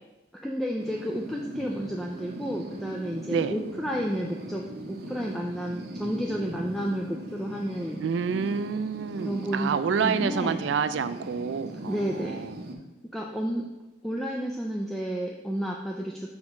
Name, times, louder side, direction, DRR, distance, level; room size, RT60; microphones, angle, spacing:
voice 1, 0.3-8.0 9.2-10.6 11.9-12.5 13.1-13.7 14.0-16.3, equal, ahead, -1 dB, 0.3 m, -31 dB
sound 1, 0.8-12.7, right 1 dB, 55° right, 0.7 m, -40 dB
voice 2, 8.0-12.5, right 6 dB, 80° right, 12 dB, 0.3 m, -28 dB
6.3 x 3.5 x 4.9 m, 1.1 s
head